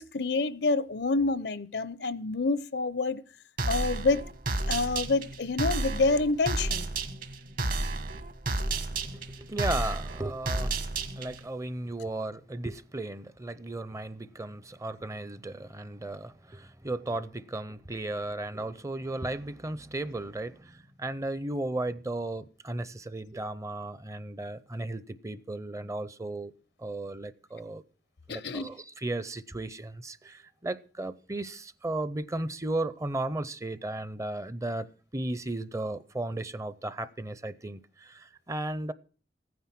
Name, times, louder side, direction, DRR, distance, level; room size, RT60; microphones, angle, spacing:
voice 1, 0.0-3.2 3.6-4.2 4.7-6.9 28.3-28.7, left 3 dB, 75° left, 0.7 m, -27 dB
sound 1, 3.6-11.5, right 2 dB, 50° right, 1.5 m, -32 dB
voice 2, 9.1-10.8 11.2-26.5 26.8-27.8 28.3-38.9, right 2 dB, 20° right, 0.6 m, -35 dB
15.0 x 9.5 x 5.9 m
head